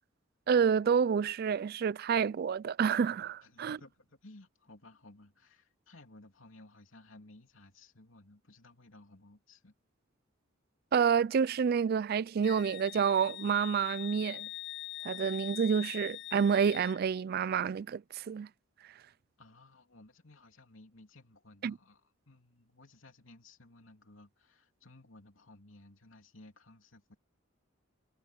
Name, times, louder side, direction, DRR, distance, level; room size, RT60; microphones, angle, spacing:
voice 1, 0.5-3.8 10.9-14.5 15.0-18.5 21.6-21.7, right 7 dB, 50° right, 0.3 m, -29 dB
voice 2, 3.4-9.7 19.4-27.2, left 2 dB, 80° left, 3.0 m, -57 dB
Wind instrument woodwind instrument, 12.4-17.0, left 17 dB, 55° left, 0.4 m, -43 dB
head